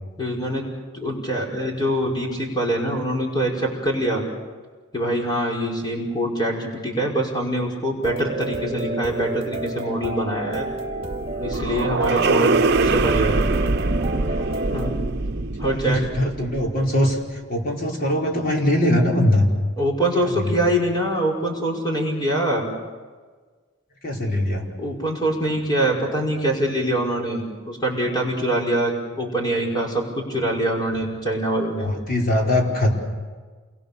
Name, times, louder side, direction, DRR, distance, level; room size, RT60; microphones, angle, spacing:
voice 1, 0.2-0.7 0.9-4.2 4.9-10.7 11.4-13.4 14.7-14.9 15.6-16.1 19.8-22.7 24.8-31.9, right 1 dB, 20° left, -1 dB, 5.6 m, -24 dB
sound 1, 8.0-14.9, right 2 dB, 30° right, 3.3 m, -30 dB
sound 2, 10.5-17.0, right 3 dB, 60° right, 0.9 m, -24 dB
voice 2, 11.9-12.3 15.6-19.5 20.2-20.4 24.0-24.7 30.9-31.0 31.8-32.9, left 1 dB, 50° left, -1 dB, 5.1 m, -22 dB
28.5 x 22.0 x 7.0 m, 1.4 s
head